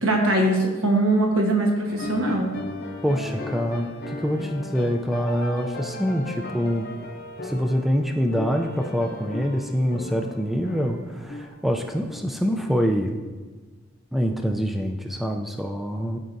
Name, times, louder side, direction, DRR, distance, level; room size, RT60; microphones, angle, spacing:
voice 1, 0.0-2.5, right 1 dB, 75° right, 1 dB, 1.2 m, -21 dB
sound 1, 1.9-13.2, left 2 dB, 50° left, 0.7 m, -37 dB
voice 2, 3.0-6.9 7.4-13.2 14.1-16.2, equal, ahead, 3 dB, 0.3 m, -25 dB
13.0 x 4.5 x 2.6 m, 1.4 s
head